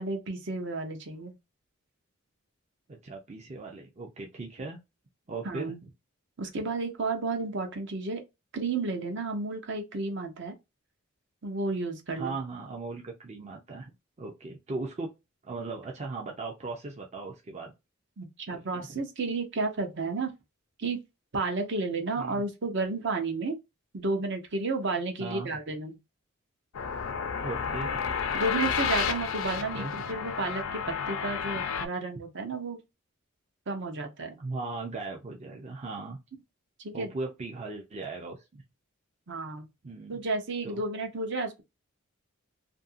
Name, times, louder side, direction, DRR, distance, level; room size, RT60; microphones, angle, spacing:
voice 1, 0.0-1.3 5.4-5.8 6.4-8.2 8.5-10.5 11.4-12.4 18.2-20.3 20.8-21.0 21.3-23.6 23.9-26.0 28.3-32.8 33.7-34.4 36.8-37.1 39.3-39.7 40.1-41.6, right 3 dB, 60° right, 0.8 m, -32 dB
voice 2, 2.9-4.8 5.3-5.8 12.1-13.9 14.2-15.1 15.4-17.7 18.5-18.9 22.2-22.4 25.2-25.5 27.4-28.1 29.7-30.0 31.5-31.6 34.4-36.2 36.9-38.6 39.8-40.2 40.6-40.8, right 3 dB, 35° right, 0.5 m, -38 dB
sound 1, 26.7-31.9, left 6 dB, 70° left, 0.4 m, -31 dB
2.7 x 2.6 x 2.5 m
head